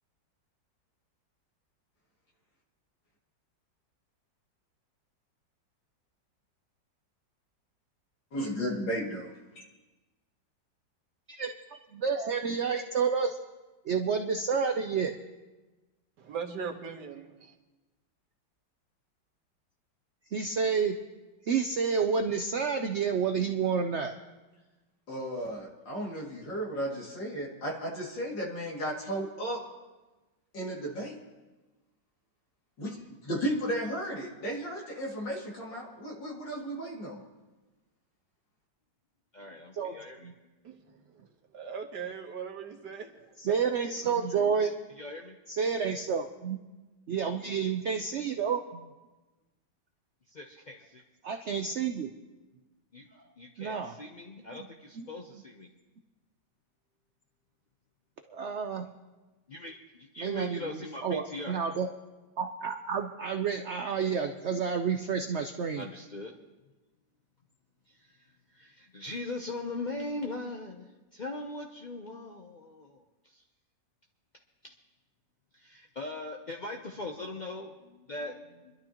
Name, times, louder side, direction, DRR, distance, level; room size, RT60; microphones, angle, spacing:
voice 1, 8.3-9.3 9.6-9.7 25.1-29.6 30.5-31.1 32.8-37.2, equal, 80° left, -3 dB, 3.1 m, -34 dB
voice 2, 11.9-13.4 13.8-15.1 20.3-21.0 21.4-24.1 39.7-39.9 40.2-40.3 43.4-44.7 45.5-46.6 47.1-48.8 51.2-52.1 53.6-53.9 55.0-55.1 58.3-58.9 60.2-61.9 62.4-65.8, right 6 dB, 90° right, 6 dB, 0.6 m, -29 dB
voice 3, 16.2-17.5 40.6-43.7 44.0-44.6, right 6 dB, 65° right, 3 dB, 1.8 m, -41 dB
voice 4, 39.3-40.3 45.0-45.4 50.3-51.0 52.9-55.7 59.5-61.6 65.8-66.4 67.9-68.1 68.5-73.4 74.6-74.7 75.5-78.7, left 2 dB, 55° left, 1 dB, 0.5 m, -40 dB
27.5 x 12.0 x 3.0 m, 1.2 s
omnidirectional pair, 2.0 m